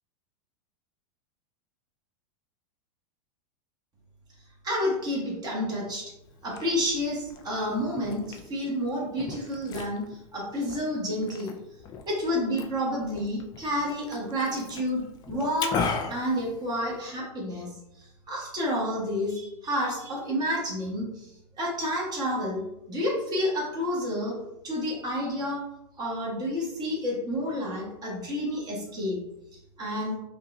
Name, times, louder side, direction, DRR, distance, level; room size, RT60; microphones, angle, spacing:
voice 1, 4.6-6.1 6.4-11.5 12.1-15.8 16.1-17.7 18.0-21.3 21.6-22.6 22.9-24.4 24.6-25.6 26.0-29.2 29.8-30.2, equal, 20° right, -4 dB, 1.5 m, -30 dB
Liquid, 6.2-17.2, left 5 dB, 20° left, 0.3 m, -38 dB
5.3 x 2.5 x 2.6 m, 0.87 s
supercardioid pair, 140°, 20 cm